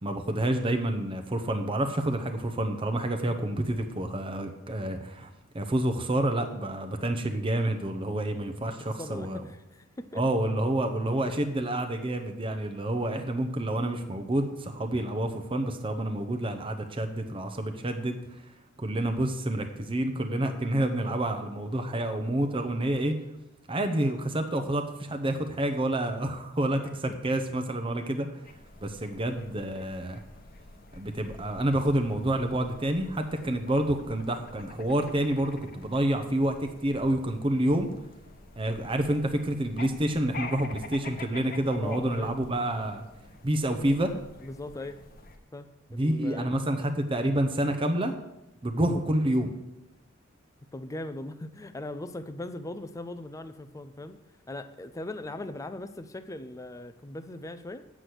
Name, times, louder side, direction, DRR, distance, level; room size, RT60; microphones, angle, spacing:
voice 1, 0.0-9.4 10.1-18.2 18.8-23.1 23.7-28.3 28.8-30.2 31.0-37.9 38.6-43.0 43.4-44.1 45.9-48.1 48.6-49.5, right 1 dB, 25° right, 5 dB, 0.7 m, -28 dB
voice 2, 8.6-10.2 41.8-42.4 44.4-45.0 45.5-46.5 50.7-54.2 54.5-57.8, left 2 dB, 15° left, 9 dB, 0.4 m, -39 dB
sound 1, 28.4-45.4, left 3 dB, 45° left, 1.0 m, -47 dB
8.3 x 6.0 x 7.8 m, 0.92 s
head